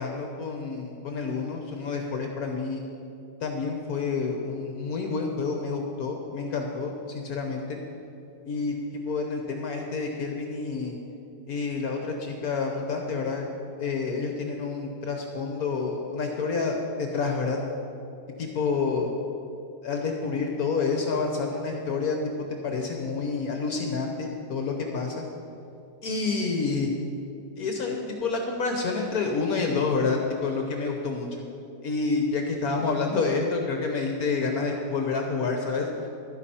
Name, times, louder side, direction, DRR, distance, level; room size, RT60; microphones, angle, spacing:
voice 1, 0.0-2.8 3.4-7.8 8.5-11.0 11.5-13.5 13.8-17.6 18.4-19.1 19.8-22.2 22.6-25.2 26.0-26.9 27.6-31.4 31.8-35.9, left 4 dB, 60° left, 2 dB, 1.3 m, -28 dB
11.5 x 9.9 x 4.3 m, 2.7 s
omnidirectional pair, 1.9 m